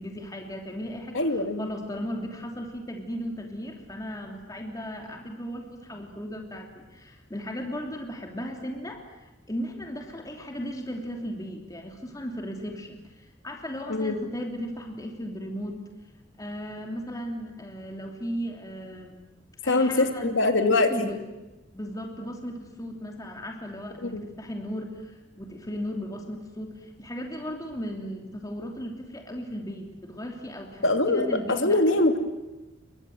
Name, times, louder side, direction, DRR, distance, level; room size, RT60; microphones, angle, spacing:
voice 1, 0.0-15.8 16.4-19.2 19.6-20.4 20.7-21.2 21.7-32.0, equal, 20° left, 2 dB, 2.9 m, -36 dB
voice 2, 1.1-1.7 13.9-14.2 19.6-21.1 24.1-24.2 30.8-32.2, left 2 dB, 75° left, 6 dB, 2.8 m, -23 dB
29.5 x 23.0 x 7.9 m, 1.0 s
head